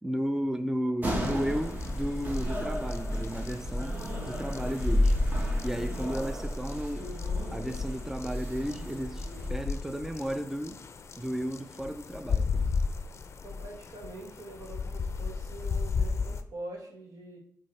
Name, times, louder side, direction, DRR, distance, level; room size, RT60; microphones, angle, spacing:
voice 1, 0.0-3.9 4.3-5.2 5.6-7.1 7.5-10.8 11.2-12.7, equal, 5° right, 8 dB, 0.4 m, -33 dB
sound 1, 1.0-9.5, equal, 30° right, 1.4 m, -32 dB
sound 2, 1.1-16.4, left 5 dB, 50° left, 0.5 m, -35 dB
voice 2, 13.4-17.4, right 1 dB, 85° right, 0 dB, 1.9 m, -44 dB
8.7 x 3.5 x 3.3 m, 0.66 s
cardioid pair, 100°, 6 cm